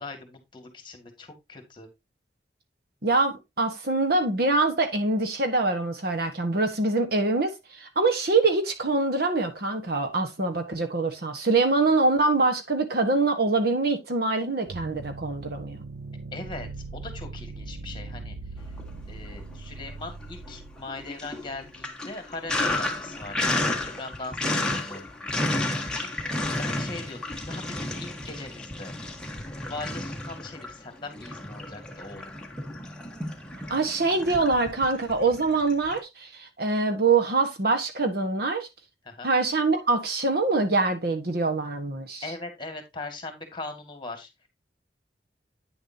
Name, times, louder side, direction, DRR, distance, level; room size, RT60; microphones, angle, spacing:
voice 1, 0.0-1.9 16.3-18.6 19.1-25.1 25.4-28.9 29.7-32.4 39.0-39.3 42.2-44.5, left 3 dB, 25° left, 2.0 m, -40 dB
voice 2, 3.0-15.8 33.7-38.7 39.2-42.2, right 3 dB, 60° right, 1.4 m, -24 dB
sound 1, 14.7-21.8, right 3 dB, 75° right, 0.6 m, -40 dB
Sink (filling or washing), 18.7-19.6 19.9-36.0, left 2 dB, 5° left, 1.3 m, -32 dB
9.5 x 6.8 x 2.8 m
head